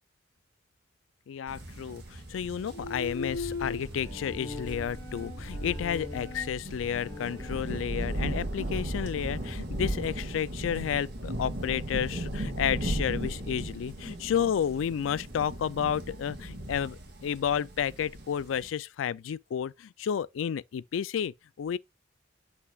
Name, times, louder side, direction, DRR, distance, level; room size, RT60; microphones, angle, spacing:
voice 1, 1.3-21.8, left 8 dB, 90° left, 0.3 m, -31 dB
sound 1, 1.5-18.7, right 1 dB, 55° right, 2.2 m, -37 dB
Bowed string instrument, 2.6-7.6, left 4 dB, 10° left, 3.9 m, -40 dB
8.0 x 5.7 x 2.3 m
head